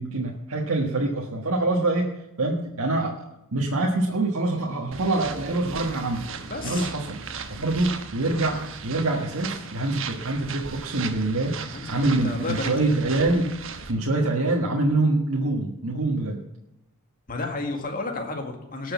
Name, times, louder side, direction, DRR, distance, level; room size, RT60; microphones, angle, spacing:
voice 1, 0.0-6.2 6.6-7.2 7.5-11.6 11.9-13.6 13.9-16.4, right 2 dB, 85° right, -1 dB, 1.5 m, -25 dB
sound 1, 4.9-13.9, right 5 dB, 60° right, 1.3 m, -37 dB
voice 2, 6.5-6.9 11.7-11.9 12.2-12.9 17.3-18.9, left 3 dB, 40° left, 3 dB, 2.0 m, -31 dB
19.0 x 6.5 x 7.1 m, 0.88 s
head